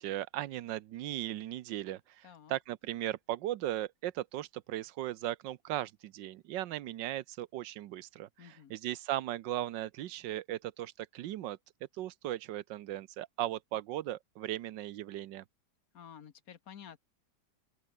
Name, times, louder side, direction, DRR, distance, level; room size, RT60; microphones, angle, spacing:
voice 1, 0.0-11.6 12.0-15.4, right 14 dB, 85° right, 1.4 m, -37 dB
voice 2, 2.2-2.6 8.4-8.8 15.9-17.0, left 8 dB, 55° left, 1.4 m, -51 dB
omnidirectional pair, 1.9 m